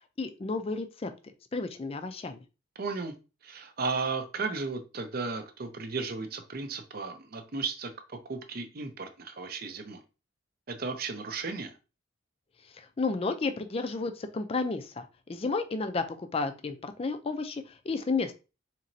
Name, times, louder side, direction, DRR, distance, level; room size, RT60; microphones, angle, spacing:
voice 1, 0.2-1.1 1.5-2.4 12.8-18.3, left 3 dB, 30° left, 9 dB, 0.4 m, -32 dB
voice 2, 2.8-3.1 3.4-10.0 10.7-11.7, right 4 dB, 50° right, 7 dB, 0.6 m, -35 dB
4.1 x 3.0 x 2.6 m, 0.31 s
head